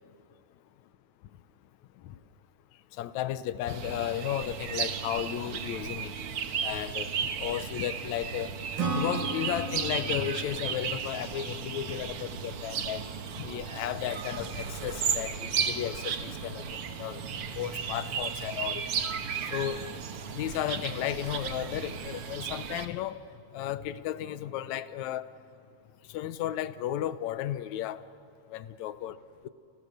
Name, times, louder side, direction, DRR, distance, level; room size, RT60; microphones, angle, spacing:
voice 1, 2.9-6.1 6.6-8.6 8.9-13.1 13.4-17.2 17.6-18.9 19.5-19.8 20.3-23.2 23.5-25.3 26.1-28.0 28.5-29.2, left 12 dB, 75° left, 14 dB, 2.0 m, -34 dB
sound 1, 3.7-22.9, right 7 dB, 55° right, 1.9 m, -35 dB
Acoustic guitar / Strum, 8.8-12.3, right 3 dB, 40° right, 2.6 m, -35 dB
30.0 x 29.0 x 6.6 m, 2.5 s
omnidirectional pair, 3.5 m